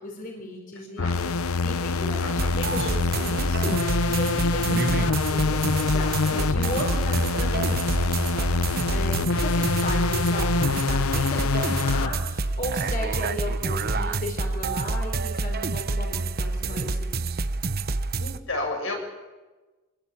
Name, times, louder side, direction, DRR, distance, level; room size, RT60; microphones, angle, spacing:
voice 1, 0.0-1.3 1.6-17.5, left 1 dB, 40° left, 1 dB, 4.4 m, -36 dB
voice 2, 0.8-1.2 2.0-2.9 6.2-6.5 18.2-18.9, left 2 dB, 65° left, 2 dB, 6.9 m, -33 dB
sound 1, 1.0-12.1, left 4 dB, 85° left, 0.7 m, -25 dB
sound 2, 2.4-18.4, right 3 dB, 45° right, 0.9 m, -28 dB
26.0 x 21.5 x 8.6 m, 1.2 s
head